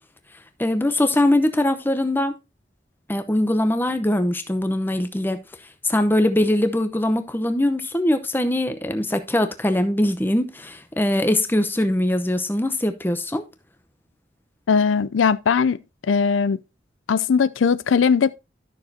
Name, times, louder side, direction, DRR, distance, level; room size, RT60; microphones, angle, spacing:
voice 1, 0.6-2.3 3.1-5.4 5.8-13.4, left 1 dB, 10° left, 0.8 m, -22 dB
voice 2, 14.7-16.6 17.1-18.3, left 6 dB, 90° left, 0.4 m, -19 dB
12.5 x 6.6 x 2.7 m
head